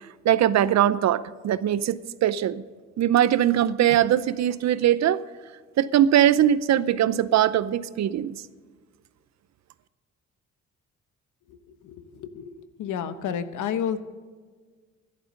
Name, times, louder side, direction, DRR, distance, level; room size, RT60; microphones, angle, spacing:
voice 1, 0.2-2.6 3.0-5.2 5.8-8.3, right 11 dB, 60° right, 16 dB, 0.7 m, -21 dB
voice 2, 11.5-14.0, left 8 dB, 80° left, 11 dB, 1.1 m, -31 dB
12.5 x 11.0 x 6.5 m, 1.5 s
cardioid pair, 90°, 30 cm